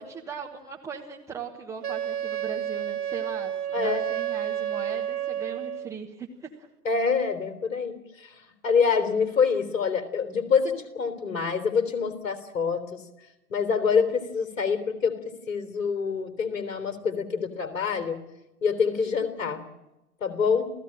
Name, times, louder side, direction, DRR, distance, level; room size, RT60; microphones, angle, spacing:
voice 1, 0.0-6.7, right 6 dB, 5° right, -1 dB, 1.2 m, -39 dB
Wind instrument woodwind instrument, 1.8-6.0, right 10 dB, 65° right, 1.1 m, -30 dB
voice 2, 3.7-4.1 6.8-13.0 13.5-18.2 18.6-19.6 20.2-20.7, left 5 dB, 50° left, 9 dB, 3.8 m, -26 dB
28.5 x 16.5 x 8.9 m, 0.98 s
figure-of-eight pair, 125°, 49 cm